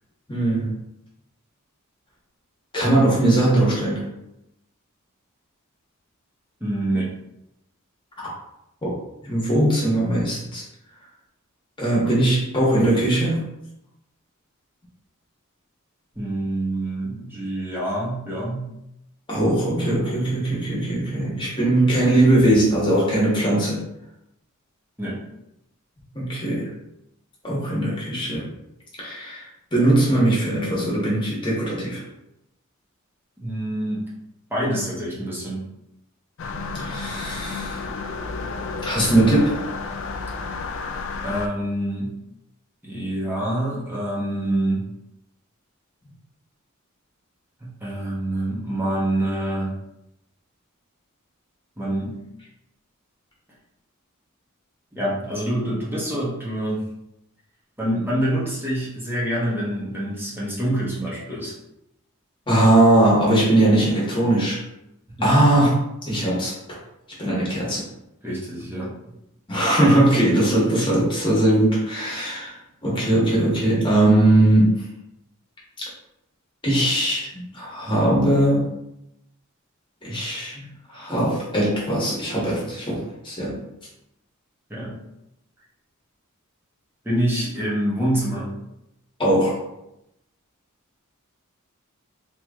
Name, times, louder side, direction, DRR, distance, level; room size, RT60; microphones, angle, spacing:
voice 1, 0.3-0.7 2.7-4.0 8.2-8.3 8.8-8.9 9.2-10.6 11.8-13.4 19.3-23.8 26.1-26.7 27.4-28.5 29.0-29.5 29.7-32.0 36.7-37.8 38.8-39.6 62.5-64.6 65.2-65.7 66.0-66.5 67.2-67.8 69.5-72.5 72.8-74.8 76.6-78.7 80.0-83.6 89.2-89.6, right 1 dB, 25° left, -6 dB, 1.4 m, -20 dB
voice 2, 6.6-7.1 16.1-18.7 25.0-25.2 33.4-34.1 34.5-35.7 41.2-42.2 42.8-44.9 47.6-49.7 51.8-52.2 54.9-56.9 57.8-61.5 65.2-65.4 68.2-68.9 84.7-85.0 87.0-88.5, right 1 dB, 10° right, -7 dB, 1.2 m, -26 dB
sound 1, 36.4-41.5, left 4 dB, 60° left, 0.4 m, -31 dB
3.1 x 3.0 x 3.6 m, 0.84 s
head